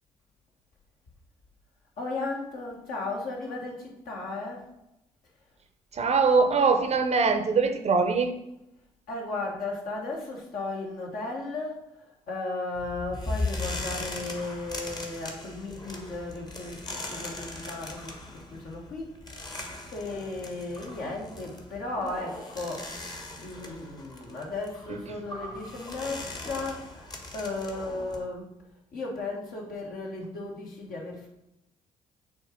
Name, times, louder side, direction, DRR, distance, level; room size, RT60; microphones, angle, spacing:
voice 1, 2.0-4.7 9.1-22.9 23.4-28.5 28.9-31.3, left 2 dB, 55° left, -1 dB, 1.6 m, -35 dB
voice 2, 5.9-8.3, right 4 dB, 40° right, 6 dB, 0.7 m, -22 dB
sound 1, 12.7-28.3, left 2 dB, 25° left, 1.2 m, -39 dB
7.4 x 2.9 x 4.5 m, 0.88 s
figure-of-eight pair, 45°, 17 cm